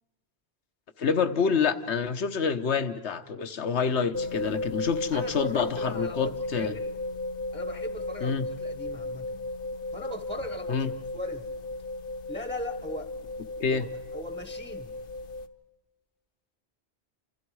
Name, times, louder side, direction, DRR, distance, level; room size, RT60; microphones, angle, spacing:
voice 1, 1.0-6.8 8.2-8.5 10.7-10.9 13.6-13.8, left 6 dB, 85° left, 11 dB, 1.3 m, -27 dB
sound 1, 4.1-15.5, left 2 dB, 60° left, 1.1 m, -35 dB
voice 2, 5.1-6.9 7.5-9.4 9.9-11.5 12.3-13.1 13.7-14.9, left 1 dB, 5° left, 10 dB, 0.9 m, -39 dB
29.0 x 27.0 x 4.8 m, 1.2 s
omnidirectional pair, 1.1 m